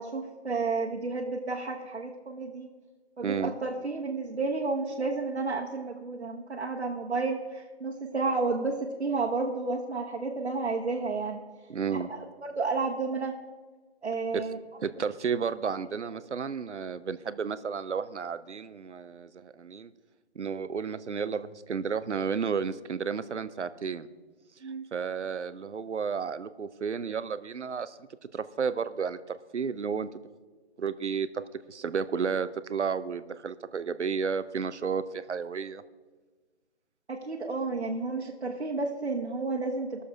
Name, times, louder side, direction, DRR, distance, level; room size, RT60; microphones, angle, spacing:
voice 1, 0.0-2.7 3.2-11.4 11.9-13.4 14.0-14.6 24.6-24.8 37.1-40.0, right 3 dB, 70° right, -1 dB, 1.4 m, -31 dB
voice 2, 3.2-3.5 11.7-12.1 14.3-14.4 14.8-19.9 20.4-24.1 24.9-28.0 28.3-30.1 30.8-31.4 31.7-35.8, right 6 dB, 85° right, 14 dB, 0.8 m, -32 dB
18.0 x 7.0 x 4.8 m, 1.4 s
hypercardioid pair, 175°, 34 cm